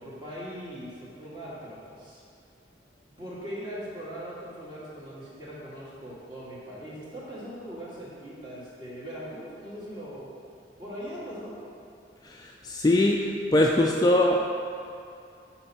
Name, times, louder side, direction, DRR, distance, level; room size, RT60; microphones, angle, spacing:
voice 1, 0.0-2.2 3.2-10.3 10.8-11.6, equal, 25° right, -8 dB, 2.0 m, -40 dB
voice 2, 12.2-14.5, left 1 dB, 20° left, -1 dB, 0.4 m, -22 dB
8.3 x 4.4 x 5.6 m, 2.5 s
head